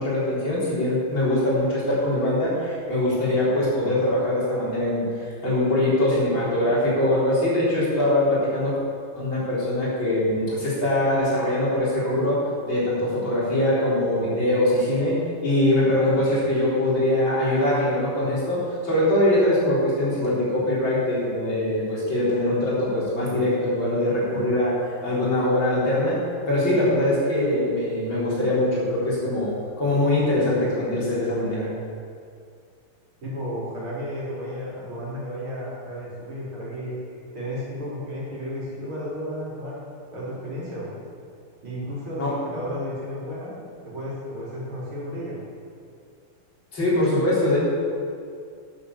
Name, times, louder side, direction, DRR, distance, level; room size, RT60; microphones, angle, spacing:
voice 1, 0.0-8.8 9.1-15.2 15.4-24.7 25.0-26.2 26.5-31.7 42.2-42.3 46.7-47.6, left 1 dB, 65° left, -8 dB, 4.7 m, -22 dB
voice 2, 33.2-37.0 37.3-39.8 40.1-40.9 41.6-43.5 43.8-45.4, equal, 80° right, -7 dB, 4.5 m, -33 dB
10.0 x 9.2 x 7.2 m, 2.3 s
omnidirectional pair, 2.3 m